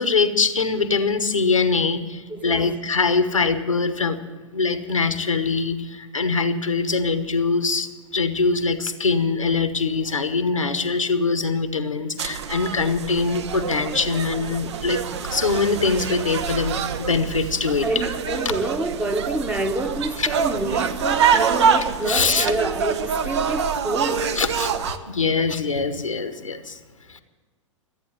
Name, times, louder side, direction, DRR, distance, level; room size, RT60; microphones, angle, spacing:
voice 1, 0.0-4.2 4.5-17.9 20.2-20.3 22.0-22.5 24.3-24.7 25.1-26.8 27.1-27.2, left 4 dB, 85° left, 1.1 m, -23 dB
voice 2, 2.3-2.8 17.8-24.3, right 2 dB, 10° right, 1.0 m, -27 dB
sound 1, 12.2-25.0, right 6 dB, 60° right, 0.9 m, -25 dB
13.5 x 9.0 x 9.4 m
figure-of-eight pair, 100°, 16 cm